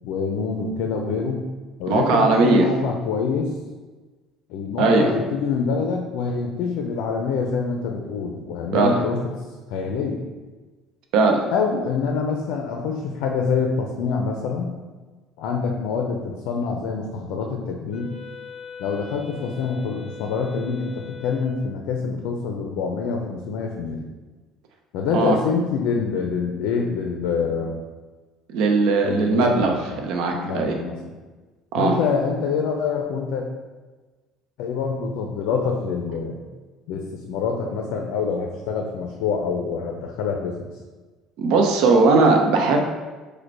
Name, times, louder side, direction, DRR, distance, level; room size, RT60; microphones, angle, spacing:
voice 1, 0.0-1.4 1.8-3.5 4.5-9.2 9.7-10.2 11.5-14.7 15.4-18.1 18.8-24.0 24.9-27.8 29.0-30.0 30.3-31.0 31.8-33.4 34.6-36.4 36.9-40.7, left 5 dB, 75° left, 2 dB, 0.5 m, -26 dB
voice 2, 1.9-2.7 4.8-5.1 8.7-8.9 11.1-11.4 25.1-25.4 28.5-29.8 30.0-30.7 31.7-32.0 41.4-42.8, right 3 dB, 70° right, 2 dB, 0.7 m, -18 dB
Wind instrument woodwind instrument, 17.9-21.7, left 6 dB, 30° left, 0.7 m, -40 dB
5.0 x 2.2 x 4.6 m, 1.3 s
cardioid pair, 135°, 0 cm